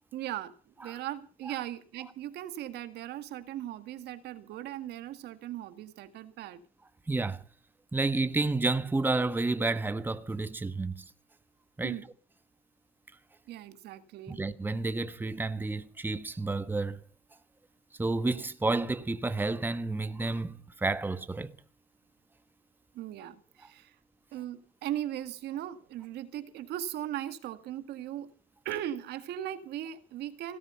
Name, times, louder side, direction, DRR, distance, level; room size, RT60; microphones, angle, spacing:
voice 1, 0.1-6.6 11.8-12.1 13.5-14.4 22.9-24.0 24.3-28.3 28.6-30.6, right 12 dB, 80° right, 1.9 m, -38 dB
voice 2, 7.1-7.4 7.9-11.0 11.8-11.9 14.3-17.0 18.0-21.6, right 3 dB, 10° right, 1.1 m, -30 dB
17.5 x 13.0 x 5.5 m
cardioid pair, 110°, 17 cm